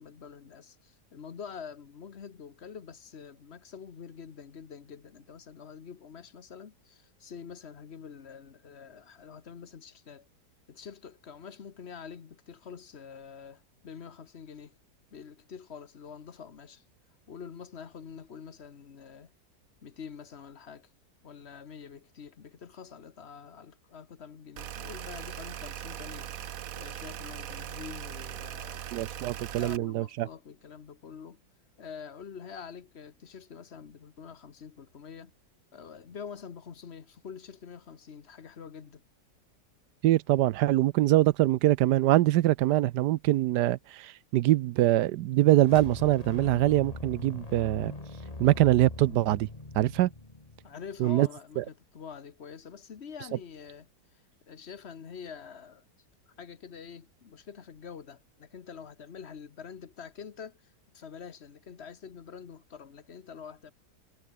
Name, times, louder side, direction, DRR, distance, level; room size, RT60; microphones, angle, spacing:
voice 1, 0.0-10.3 10.7-14.7 15.1-16.8 17.3-19.3 19.8-20.9 21.2-26.3 26.7-28.8 29.1-31.4 31.8-35.3 35.7-39.0 50.6-55.8 56.3-63.7, left 6 dB, 40° left, 1.3 m, -46 dB
sound 1, 24.6-29.8, right 10 dB, 60° right, 1.3 m, -40 dB
voice 2, 28.9-30.3 40.0-47.9 48.4-49.5 49.7-50.1 51.0-51.3 51.6-51.7, right 15 dB, 80° right, 1.2 m, -24 dB
sound 2, 45.6-51.0, left 2 dB, 20° left, 2.4 m, -42 dB
omnidirectional pair, 1.8 m